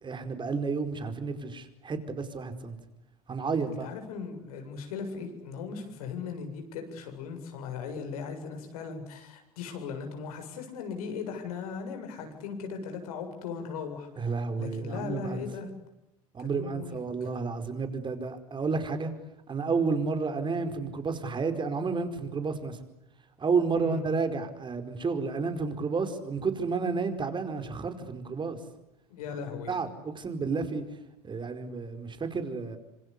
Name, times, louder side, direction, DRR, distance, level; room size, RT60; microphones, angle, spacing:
voice 1, 0.0-2.8 3.3-3.9 14.2-15.4 16.3-19.1 19.5-22.8 23.4-28.6 29.7-30.8 31.2-32.8, right 4 dB, 25° right, 8 dB, 4.9 m, -31 dB
voice 2, 3.6-15.7 16.4-17.0 23.7-24.0 29.1-29.7, left 5 dB, 75° left, 6 dB, 7.6 m, -38 dB
26.5 x 26.5 x 8.4 m, 0.90 s
hypercardioid pair, 90°, 19 cm